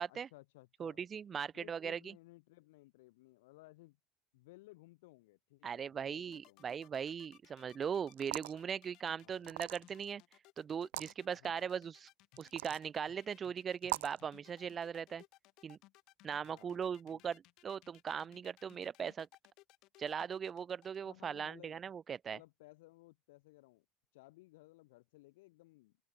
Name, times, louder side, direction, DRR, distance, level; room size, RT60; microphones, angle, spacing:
voice 1, 0.1-1.0 1.5-4.0 4.3-6.7 9.2-9.5 11.3-11.7 16.4-17.2 21.0-21.8 22.3-23.8 24.1-26.1, left 20 dB, 80° left, 4.5 m, -60 dB
voice 2, 0.8-2.0 5.6-10.2 10.6-12.1 12.4-15.2 15.6-15.8 16.2-19.3 20.0-22.4, right 7 dB, 20° right, 0.3 m, -39 dB
sound 1, 6.2-21.0, left 19 dB, 40° left, 4.4 m, -63 dB
sound 2, 8.1-8.6 9.5-10.0 10.8-11.1 12.4-12.8 13.8-14.2, right 19 dB, 90° right, 0.5 m, -41 dB
open air
cardioid pair, 175°, 0 cm